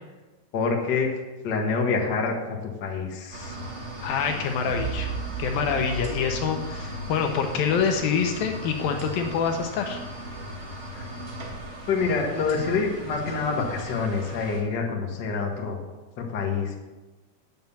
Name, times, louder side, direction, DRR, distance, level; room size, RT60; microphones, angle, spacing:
voice 1, 0.5-1.1 1.4-3.6 10.9-11.1 11.9-15.9 16.2-16.8, left 4 dB, 55° left, 0 dB, 1.2 m, -27 dB
sound 1, 3.3-14.6, equal, 85° right, 0.6 m, -37 dB
voice 2, 4.0-5.1 5.4-10.0, left 6 dB, 75° left, 5 dB, 2.4 m, -26 dB
sound 2, 4.7-8.1, right 5 dB, 60° right, 5.5 m, -36 dB
9.2 x 7.2 x 7.1 m, 1.2 s
omnidirectional pair, 4.6 m